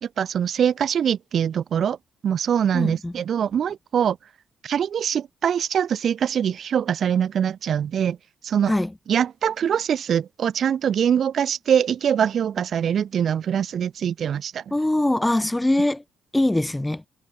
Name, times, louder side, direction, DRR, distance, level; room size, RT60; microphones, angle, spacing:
voice 1, 0.0-2.0 2.2-4.2 4.6-8.2 8.4-8.7 9.1-14.7, right 8 dB, 60° right, 1.6 m, -23 dB
voice 2, 2.7-3.1 8.7-8.9 14.7-16.0 16.3-17.0, left 1 dB, 10° left, 0.7 m, -22 dB
supercardioid pair, 60°, 0 cm